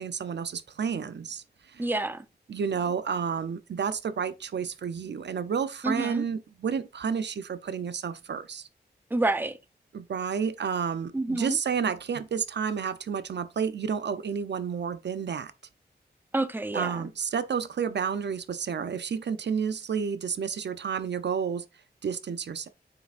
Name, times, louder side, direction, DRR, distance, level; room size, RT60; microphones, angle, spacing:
voice 1, 0.0-1.4 1.7-1.9 2.5-8.7 9.9-15.5 16.7-21.6 22.0-22.7, right 6 dB, 90° right, 0.6 m, -30 dB
voice 2, 1.8-2.2 5.8-6.2 9.1-9.6 11.1-11.6 16.3-17.1, right 2 dB, 10° right, 0.6 m, -28 dB
7.6 x 5.9 x 2.5 m
wide cardioid pair, 85°, 17 cm